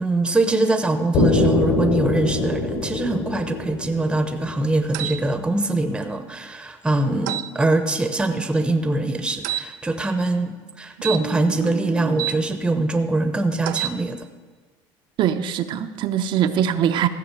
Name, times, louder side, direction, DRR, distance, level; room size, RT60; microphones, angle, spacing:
voice 1, 0.0-14.3, right 2 dB, 10° right, 7 dB, 0.8 m, -23 dB
sound 1, 1.1-5.0, left 2 dB, 65° left, 3.3 m, -23 dB
sound 2, 4.9-5.2 7.3-7.5 9.4-9.7 11.0-12.4 13.6-14.0, right 14 dB, 90° right, 0.5 m, -28 dB
voice 2, 15.2-17.1, right 9 dB, 55° right, 8 dB, 0.7 m, -22 dB
14.5 x 5.9 x 7.5 m, 1.4 s
supercardioid pair, 115°, 10 cm